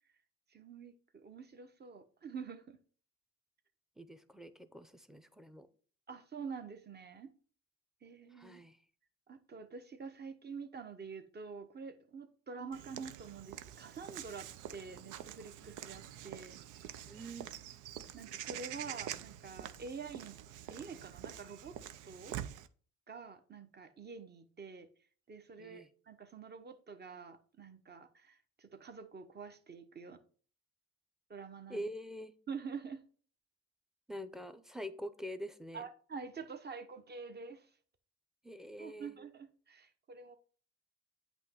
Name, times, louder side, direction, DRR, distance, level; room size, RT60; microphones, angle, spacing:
voice 1, 0.5-2.8 6.1-7.3 8.0-8.6 9.3-17.0 18.1-20.4 20.7-21.8 22.1-22.4 23.1-24.9 25.3-30.2 31.3-31.8 32.5-33.0 35.7-37.7 38.8-40.4, right 5 dB, 35° right, 0.9 m, -47 dB
voice 2, 4.0-5.7 8.3-8.8 17.1-17.5 25.6-25.9 31.7-32.3 34.1-35.8 38.4-39.2, equal, ahead, 0.6 m, -45 dB
Walk footsteps / Bird vocalization bird call bird song, 12.7-22.7, right 11 dB, 90° right, 0.5 m, -46 dB
8.3 x 3.0 x 5.7 m
cardioid pair, 90°, 30 cm